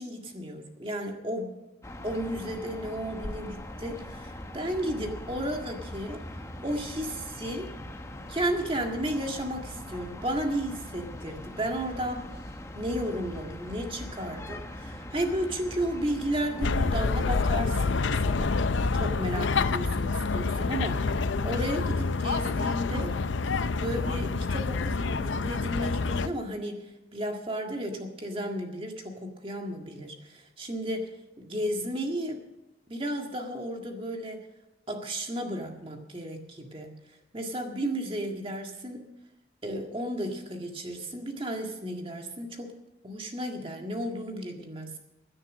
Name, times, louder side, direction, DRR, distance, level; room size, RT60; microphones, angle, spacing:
voice 1, 0.0-1.5 2.0-6.2 6.6-7.7 8.3-12.2 12.7-18.6 18.9-23.1 23.8-31.1 31.4-32.4 32.9-34.4 34.9-36.9 37.3-39.0 39.6-42.7 43.0-45.0, right 1 dB, 30° right, 3 dB, 1.8 m, -33 dB
sound 1, 1.8-16.7, left 1 dB, 15° left, 0.9 m, -41 dB
sound 2, 16.6-26.3, left 4 dB, 75° left, 0.6 m, -27 dB
16.5 x 9.9 x 6.2 m, 0.94 s
head